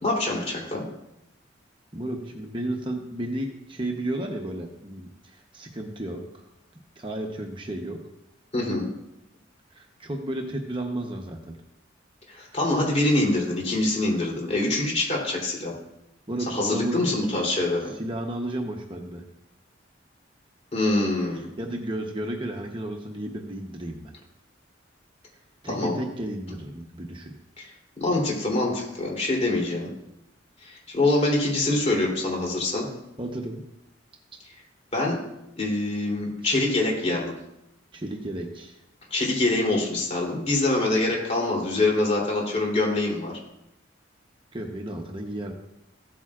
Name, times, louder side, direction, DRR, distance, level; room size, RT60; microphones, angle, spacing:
voice 1, 0.0-0.8 8.5-8.9 12.3-15.7 16.5-17.9 20.7-21.5 25.7-26.0 27.6-27.7 28.0-29.9 30.6-32.9 34.9-35.2 35.6-37.3 39.1-43.3, left 2 dB, 35° left, -2 dB, 3.2 m, -25 dB
voice 2, 1.9-6.4 7.0-8.0 9.7-11.4 12.4-12.6 16.3-17.0 17.4-19.2 21.3-24.1 25.6-27.3 33.2-33.6 36.4-36.5 37.9-38.8 44.5-45.5, right 1 dB, 25° right, 2 dB, 0.9 m, -33 dB
15.5 x 8.9 x 2.5 m, 0.86 s
head